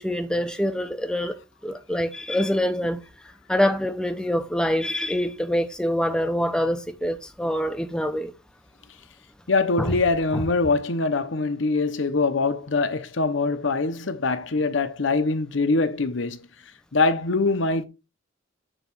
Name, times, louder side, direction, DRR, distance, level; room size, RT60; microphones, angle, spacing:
voice 1, 0.0-3.0 3.5-8.3 9.8-10.0 10.3-10.5, equal, 5° left, 0.6 m, -25 dB
voice 2, 9.5-16.4 16.9-17.8, left 3 dB, 70° left, 0.9 m, -23 dB
9.0 x 3.1 x 6.0 m
head